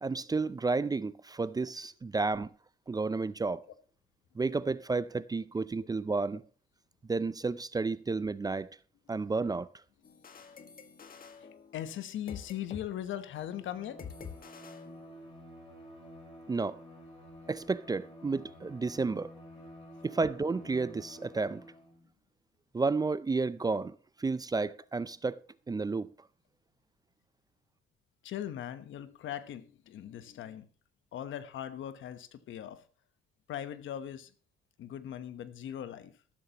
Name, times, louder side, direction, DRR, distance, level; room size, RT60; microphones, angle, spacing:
voice 1, 0.0-2.5 2.9-3.6 4.4-6.4 7.1-8.7 9.1-9.7 16.5-16.8 17.5-19.3 20.0-21.6 22.7-23.9 24.2-25.4 25.7-26.1, right 3 dB, 20° right, 0.4 m, -31 dB
sound 1, 10.0-12.9 13.1-13.4 14.0-15.5, left 6 dB, 45° left, 1.6 m, -48 dB
voice 2, 11.4-14.1 28.2-30.6 31.1-32.8 33.5-34.3 34.8-36.1, left 10 dB, 75° left, 1.1 m, -40 dB
Bowed string instrument, 13.5-22.0, equal, 30° left, 4.7 m, -51 dB
13.5 x 12.5 x 3.0 m
cardioid pair, 90°, 20 cm